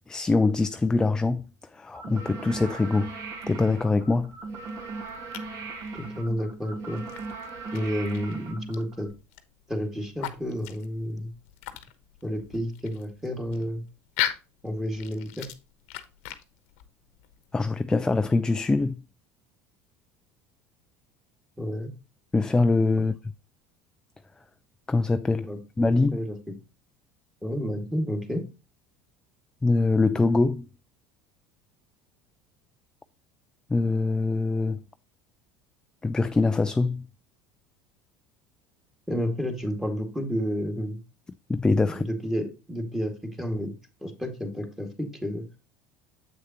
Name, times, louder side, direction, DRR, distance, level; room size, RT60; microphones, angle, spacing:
voice 1, 0.1-3.1 3.5-4.3 17.5-19.0 22.3-23.1 24.9-26.2 29.6-30.7 33.7-34.8 36.0-37.1 41.5-42.0, left 3 dB, 10° left, 0.3 m, -23 dB
sound 1, 1.9-9.1, right 3 dB, 50° right, 2.1 m, -38 dB
sound 2, 3.9-17.7, left 12 dB, 80° left, 1.0 m, -40 dB
voice 2, 5.9-7.0 7.7-9.1 9.7-11.3 12.2-13.8 14.6-15.5 21.6-21.9 25.4-25.6 26.1-26.5 27.4-28.4 39.1-41.0 41.9-43.7 44.0-45.4, equal, 5° right, 2.0 m, -30 dB
7.9 x 6.4 x 2.9 m
supercardioid pair, 110°, 7 cm